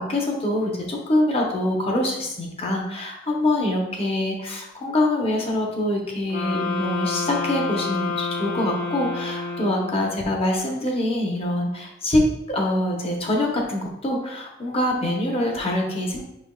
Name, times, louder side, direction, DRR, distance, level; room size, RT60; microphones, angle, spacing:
voice 1, 0.0-12.2 12.5-16.2, left 1 dB, 30° left, 0 dB, 0.8 m, -24 dB
sound 1, 6.3-10.2, left 4 dB, 50° left, 1.3 m, -29 dB
5.7 x 3.4 x 2.3 m, 0.87 s
head